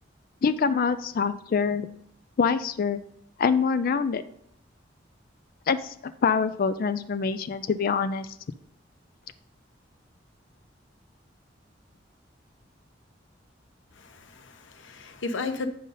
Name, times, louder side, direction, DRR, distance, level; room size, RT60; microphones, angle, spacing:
voice 1, 0.4-1.9 2.4-3.0 3.4-4.2 5.7-8.3, left 5 dB, 50° left, 12 dB, 0.4 m, -25 dB
voice 2, 14.0-15.7, left 3 dB, 85° left, 8 dB, 0.9 m, -34 dB
8.8 x 5.3 x 3.9 m, 0.71 s
head